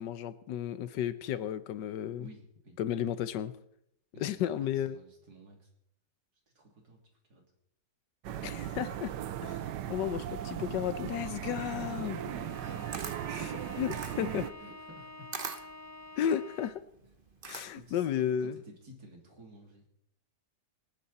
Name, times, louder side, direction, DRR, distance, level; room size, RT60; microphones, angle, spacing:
voice 1, 0.0-2.3 2.8-3.5 4.2-5.0 8.4-9.1 9.4-12.2 13.3-14.5 16.2-16.8 17.4-18.6, left 10 dB, 85° left, 14 dB, 1.4 m, -33 dB
voice 2, 2.2-2.8 4.1-5.7 6.6-7.0 7.3-7.4 11.3-13.1 14.6-15.3 17.5-19.9, right 1 dB, 65° right, 1 dB, 3.6 m, -51 dB
sound 1, 8.2-14.5, right 10 dB, 80° right, 1.4 m, -38 dB
Bowed string instrument, 12.1-16.9, left 2 dB, 15° left, 0.6 m, -49 dB
Camera, 12.9-18.0, right 5 dB, 35° right, 1.0 m, -43 dB
26.5 x 9.8 x 4.2 m, 0.74 s
omnidirectional pair, 1.8 m